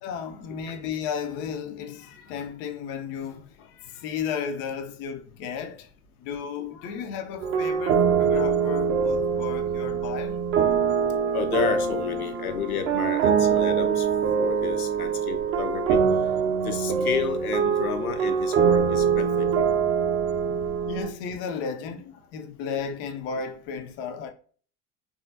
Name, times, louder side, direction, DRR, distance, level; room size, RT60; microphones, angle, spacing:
voice 1, 0.0-5.9 6.2-10.4 16.4-16.7 20.9-24.3, left 6 dB, 30° left, 0.4 m, -34 dB
sound 1, 7.4-21.1, right 6 dB, 30° right, 0.5 m, -24 dB
voice 2, 11.3-14.1 14.4-16.0 16.6-19.5, left 6 dB, 75° left, 0.6 m, -31 dB
3.5 x 2.4 x 2.4 m
figure-of-eight pair, 65°, 44 cm